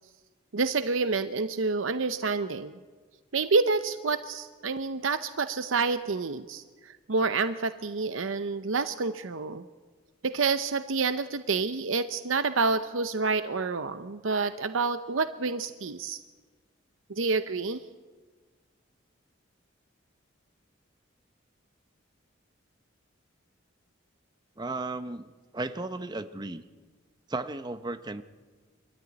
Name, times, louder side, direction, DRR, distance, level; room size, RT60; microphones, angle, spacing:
voice 1, 0.5-2.7 3.3-9.6 10.2-16.2 17.1-17.8, right 4 dB, 80° right, 10 dB, 0.8 m, -28 dB
voice 2, 24.6-26.6 27.3-28.2, right 2 dB, 20° right, 11 dB, 0.8 m, -35 dB
25.0 x 13.5 x 9.7 m, 1.4 s
head